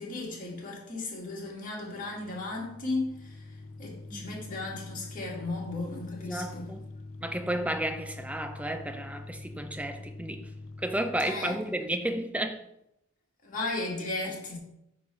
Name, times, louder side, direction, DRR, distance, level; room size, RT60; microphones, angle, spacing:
voice 1, 0.0-6.7 11.2-11.6 13.4-14.6, left 2 dB, 35° left, 1.9 m, -35 dB
sound 1, 1.8-11.7, left 2 dB, 60° left, 0.5 m, -45 dB
voice 2, 6.3-6.8 7.2-10.4 10.8-12.6, right 1 dB, 5° right, 0.5 m, -32 dB
8.4 x 3.2 x 5.5 m
head